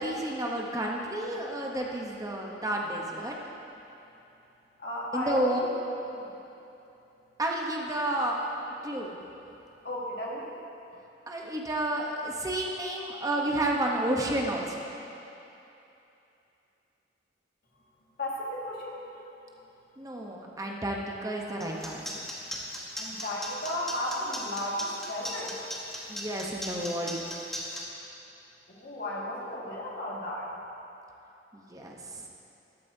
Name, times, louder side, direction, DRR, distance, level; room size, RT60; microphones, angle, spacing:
voice 1, 0.0-3.4 5.1-5.6 7.4-8.4 8.8-9.2 11.3-14.8 20.0-22.2 26.1-27.2 31.5-32.3, right 1 dB, 20° right, -1 dB, 0.9 m, -31 dB
voice 2, 4.8-5.7 6.0-6.4 9.8-10.5 18.2-19.0 23.0-25.5 28.7-30.6, left 1 dB, 60° left, -4 dB, 1.9 m, -34 dB
sound 1, 21.6-27.8, equal, ahead, 1.5 m, -37 dB
13.5 x 12.5 x 2.7 m, 2.9 s
head